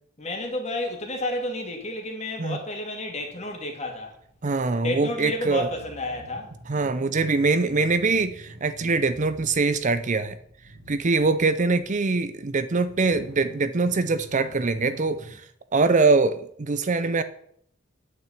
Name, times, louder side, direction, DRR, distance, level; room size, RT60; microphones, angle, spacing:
voice 1, 0.2-4.1 4.8-6.5, left 1 dB, 35° left, 2.3 m, -31 dB
sound 1, 3.0-15.3, right 1 dB, 75° right, 2.4 m, -47 dB
voice 2, 4.4-5.7 6.7-10.4 10.9-15.4 15.7-17.2, right 3 dB, 35° right, 0.6 m, -23 dB
9.2 x 6.1 x 8.4 m
head